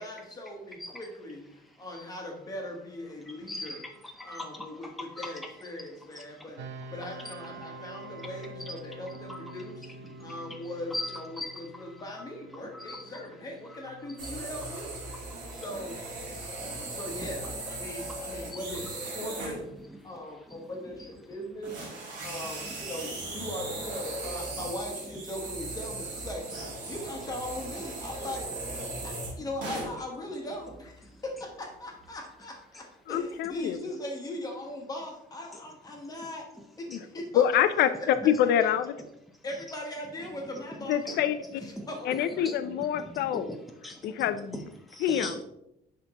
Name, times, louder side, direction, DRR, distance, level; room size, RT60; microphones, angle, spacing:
voice 1, 0.0-1.5 1.8-3.8 4.2-6.6 6.9-9.9 10.2-15.0 15.5-16.1 16.9-19.6 20.0-21.8 22.1-28.5 29.0-36.4 36.8-37.4 38.4-38.7 39.4-41.2 41.6-42.1, left 1 dB, 20° left, 1 dB, 1.2 m, -39 dB
voice 2, 3.5-3.9 4.2-4.7 5.2-5.3 6.1-6.5 8.6-8.7 9.3-9.4 10.2-10.3 10.9-11.9 12.7-13.2 16.3-17.3 18.1-18.6 20.5-20.7 21.0-21.1 29.0-29.1 41.1-41.2 41.8-41.9 42.4-43.6 43.8-44.1 44.5-45.4, left 1 dB, ahead, 2 dB, 0.6 m, -40 dB
sound 1, 6.6-19.4, right 2 dB, 90° right, 0.7 m, -48 dB
sound 2, 14.2-19.6 20.9-21.1 21.6-30.0 30.6-30.9 31.5-31.6 32.0-32.1, right 2 dB, 50° right, 2.1 m, -38 dB
voice 3, 33.1-33.8 36.9-37.0 37.3-38.9 40.9-41.6 42.1-43.5 44.0-44.6 45.0-45.3, left 10 dB, 70° left, 12 dB, 0.5 m, -26 dB
9.9 x 3.7 x 2.9 m, 0.82 s
cardioid pair, 170°, 18 cm